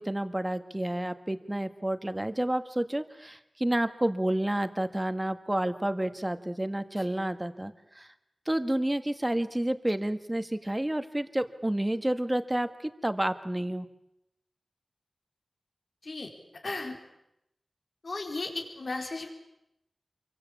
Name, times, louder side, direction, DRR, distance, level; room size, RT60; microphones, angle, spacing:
voice 1, 0.0-8.1 8.5-13.9, right 1 dB, 15° right, 9 dB, 1.9 m, -30 dB
voice 2, 16.0-17.0 18.0-19.3, left 3 dB, 60° left, 3 dB, 4.5 m, -36 dB
27.5 x 23.5 x 8.6 m, 0.83 s
wide cardioid pair, 85°, 0 cm